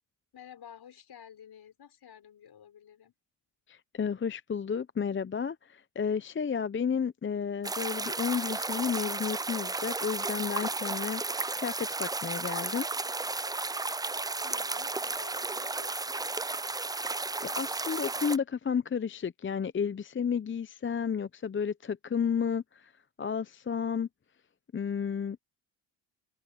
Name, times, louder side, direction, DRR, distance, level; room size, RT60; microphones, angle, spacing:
voice 1, 0.3-3.1 14.4-16.5, left 9 dB, 60° left, 6.4 m, -52 dB
voice 2, 3.7-12.9 17.4-22.9 23.2-24.1 24.7-25.4, left 6 dB, 25° left, 0.8 m, -32 dB
sound 1, 7.6-18.4, right 3 dB, 10° right, 0.4 m, -33 dB
open air
supercardioid pair, 60°, 45 cm